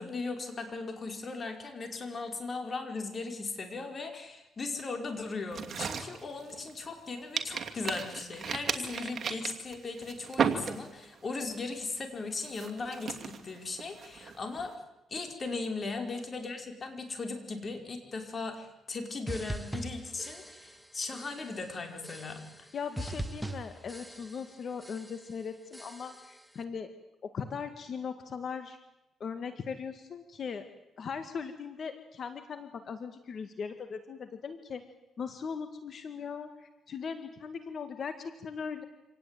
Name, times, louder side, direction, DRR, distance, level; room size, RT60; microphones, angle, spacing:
voice 1, 0.0-14.7 15.1-22.7, left 3 dB, 35° left, 5 dB, 5.1 m, -38 dB
sound 1, 5.5-7.0 7.4-11.2 11.5-11.8 12.3-14.7, right 7 dB, 50° right, 2.6 m, -35 dB
sound 2, 19.3-20.9 21.1-21.6 22.0-22.7 23.0-24.5 24.8-25.3 25.7-26.4, right 1 dB, 5° right, 1.8 m, -41 dB
voice 2, 22.7-26.9 27.2-28.8 29.2-30.7 31.0-34.9 35.2-38.8, left 6 dB, 50° left, 9 dB, 1.9 m, -39 dB
26.5 x 18.0 x 9.2 m, 0.94 s
cardioid pair, 90°, 0 cm